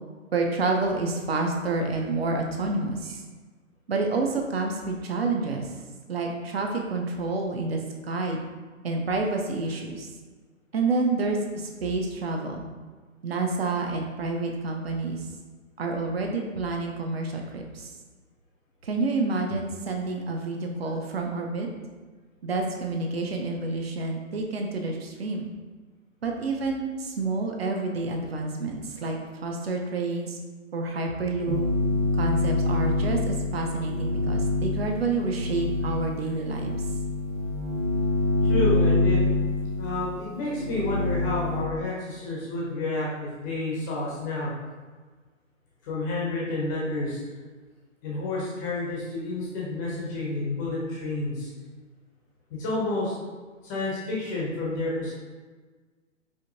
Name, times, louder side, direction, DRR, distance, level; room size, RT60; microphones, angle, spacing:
voice 1, 0.3-3.2 3.9-5.7 6.1-8.4 8.8-10.1 10.7-12.7 13.2-15.2 15.8-17.9 18.8-21.7 22.4-25.5 26.2-30.4 30.7-31.6 32.1-36.7, right 3 dB, 50° right, 2 dB, 0.6 m, -28 dB
sound 1, 31.5-41.6, left 2 dB, 85° right, 1.3 m, -26 dB
voice 2, 38.4-39.2 39.8-44.5 45.8-47.2 48.0-51.5 52.5-53.1 53.6-55.2, left 2 dB, 15° left, -5 dB, 0.6 m, -30 dB
4.9 x 2.6 x 2.6 m, 1.4 s
figure-of-eight pair, 130°, 39 cm